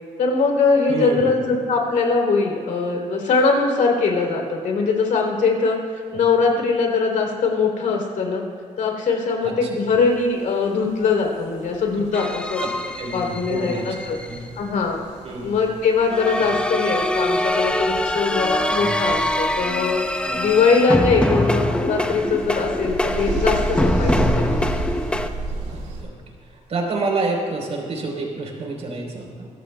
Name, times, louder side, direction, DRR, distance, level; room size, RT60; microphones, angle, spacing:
voice 1, 0.2-8.4 8.8-12.6 13.1-14.2 14.6-15.0 15.4-20.0 20.4-24.6, left 4 dB, 80° left, 1 dB, 3.4 m, -21 dB
voice 2, 0.9-1.2 9.4-9.7 12.6-12.7 13.0-14.4 15.2-15.6 16.4-16.5 18.8-19.0 20.3-20.4 24.3-24.4 25.7-26.1 26.4-29.5, right 3 dB, 55° right, 0 dB, 4.1 m, -28 dB
sound 1, 10.0-26.0, right 2 dB, 80° right, 3.5 m, -33 dB
sound 2, 12.1-14.4 16.1-25.3, left 1 dB, 10° left, 0.7 m, -23 dB
24.0 x 17.0 x 2.3 m, 2.2 s
cardioid pair, 135°, 13 cm